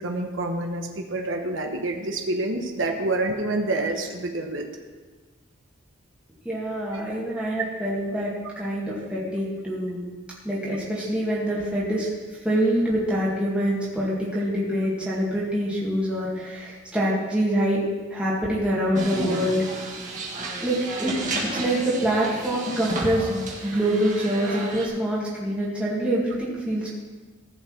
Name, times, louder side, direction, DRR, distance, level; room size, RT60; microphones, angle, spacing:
voice 1, 0.0-4.7, right 2 dB, 65° right, 3 dB, 1.1 m, -27 dB
voice 2, 6.4-10.0 10.4-12.1 12.4-17.8 18.1-19.8 20.6-21.1 21.5-27.0, right 1 dB, 5° right, -8 dB, 2.1 m, -25 dB
sound 1, 19.0-24.9, right 2 dB, 35° right, 1.8 m, -32 dB
15.0 x 5.4 x 6.2 m, 1.4 s
head